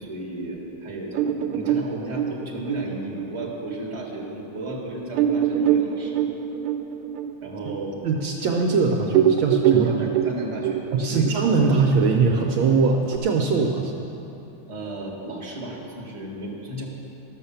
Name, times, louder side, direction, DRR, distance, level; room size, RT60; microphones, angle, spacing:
voice 1, 0.0-6.3 7.4-8.0 9.7-11.7 14.7-16.9, right 1 dB, 15° right, -3 dB, 1.6 m, -34 dB
sound 1, 1.1-4.2 4.7-4.8 5.1-8.7 9.0-13.2, right 10 dB, 85° right, 1.5 m, -24 dB
voice 2, 8.0-9.9 10.9-14.0, right 4 dB, 70° right, 1 dB, 1.4 m, -21 dB
13.0 x 6.5 x 7.1 m, 2.9 s
omnidirectional pair, 2.4 m